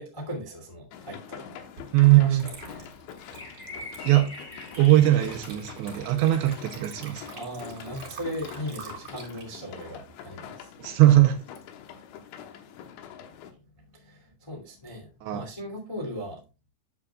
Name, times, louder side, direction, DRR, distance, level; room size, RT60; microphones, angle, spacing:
voice 1, 0.0-1.5 2.1-2.9 7.3-10.7 13.9-16.4, equal, 20° left, 0.8 m, -38 dB
sound 1, 0.9-13.5, left 8 dB, 75° left, 3.2 m, -45 dB
Water / Liquid, 1.8-1.9 2.3-10.9, right 4 dB, 40° right, 1.8 m, -46 dB
voice 2, 1.9-2.4 4.0-4.3 4.8-7.3 10.8-11.4 15.2-15.4, right 15 dB, 85° right, 2.8 m, -20 dB
sound 2, 3.3-7.2 8.3-8.4 11.3-11.4, left 2 dB, 45° left, 1.2 m, -44 dB
11.0 x 8.2 x 2.4 m
omnidirectional pair, 5.6 m